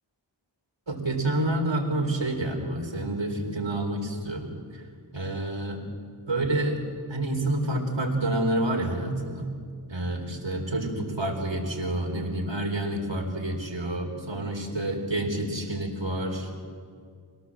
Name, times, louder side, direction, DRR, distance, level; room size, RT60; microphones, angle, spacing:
voice 1, 0.9-4.5 5.1-5.8 6.3-6.8 7.1-9.5 9.9-16.6, right 1 dB, 65° right, 1 dB, 4.2 m, -28 dB
26.0 x 18.0 x 7.6 m, 2.2 s
wide cardioid pair, 40°, 46 cm